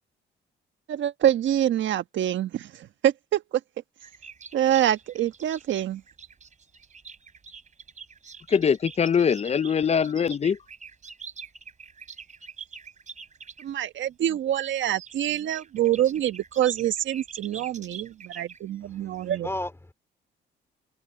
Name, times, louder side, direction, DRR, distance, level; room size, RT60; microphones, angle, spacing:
voice 1, 0.9-3.4 4.5-6.0 13.6-19.5, right 11 dB, 70° right, 1.3 m, -26 dB
sound 1, 4.0-13.7 14.8-19.4, right 6 dB, 40° right, 3.3 m, -45 dB
voice 2, 8.5-10.6, left 7 dB, 35° left, 0.5 m, -22 dB
voice 3, 18.8-19.9, left 1 dB, 15° left, 3.9 m, -35 dB
cardioid pair, 90°, 20 cm